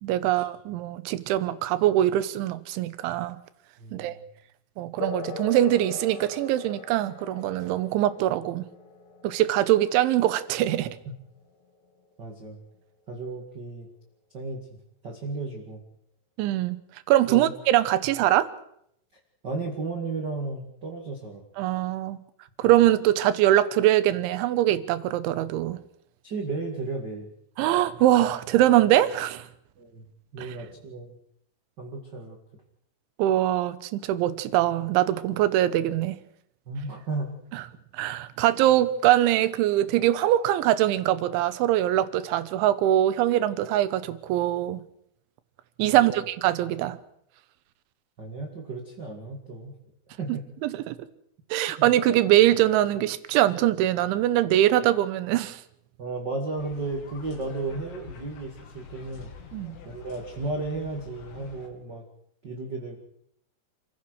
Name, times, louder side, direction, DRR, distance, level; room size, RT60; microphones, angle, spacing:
voice 1, 0.0-3.4 3.9-4.2 4.8-8.6 9.2-11.0 16.4-16.8 17.1-18.5 21.6-22.2 22.6-25.8 27.6-29.5 30.4-30.5 33.2-36.2 38.0-44.8 45.8-47.0 50.3-51.0 51.5-55.6 59.5-59.8, right 13 dB, 80° right, 3.3 m, -23 dB
voice 2, 3.8-4.2 11.0-11.1 12.2-12.6 13.1-13.9 14.3-14.7 15.0-15.8 17.3-17.5 19.4-21.4 22.6-22.7 26.2-27.3 29.8-30.0 30.3-31.2 31.8-32.4 36.6-37.3 45.9-46.3 48.2-49.7 50.1-50.4 51.8-51.9 56.0-59.3 59.8-62.0 62.4-63.0, right 3 dB, 45° right, 1.4 m, -34 dB
sound 1, 5.0-13.0, left 6 dB, 80° left, 1.4 m, -42 dB
sound 2, 56.6-61.7, left 7 dB, 65° left, 4.5 m, -46 dB
28.0 x 15.5 x 6.4 m
omnidirectional pair, 5.6 m